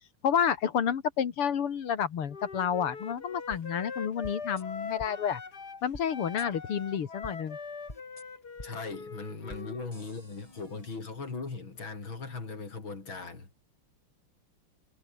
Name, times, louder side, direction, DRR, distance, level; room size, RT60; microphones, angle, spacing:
voice 1, 0.2-5.4 5.8-7.6, left 8 dB, 85° left, 2.8 m, -30 dB
Wind instrument woodwind instrument, 2.3-5.8 6.1-9.9, left 5 dB, 45° left, 3.2 m, -42 dB
sound 1, 3.5-3.6 4.2-4.6 5.0-5.1 5.9-6.1 6.4-6.5 7.2-7.4 7.9-8.2 8.6-8.7 9.5-9.6 9.9-10.9, left 1 dB, 15° left, 5.3 m, -46 dB
voice 2, 8.6-13.5, left 4 dB, 65° left, 5.2 m, -39 dB
omnidirectional pair, 2.4 m